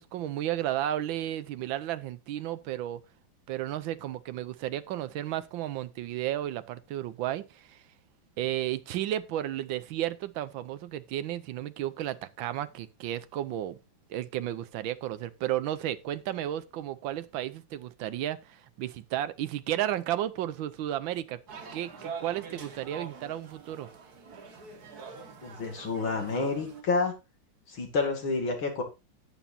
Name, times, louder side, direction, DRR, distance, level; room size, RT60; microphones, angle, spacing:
voice 1, 0.0-3.0 3.5-7.8 8.4-13.8 14.1-21.4 21.7-23.9, right 12 dB, 85° right, 1.5 m, -33 dB
sound 1, 21.5-26.8, right 5 dB, 55° right, 2.0 m, -44 dB
voice 2, 25.4-27.1 27.7-28.8, left 3 dB, 90° left, 3.2 m, -29 dB
11.0 x 9.2 x 2.7 m
omnidirectional pair, 2.1 m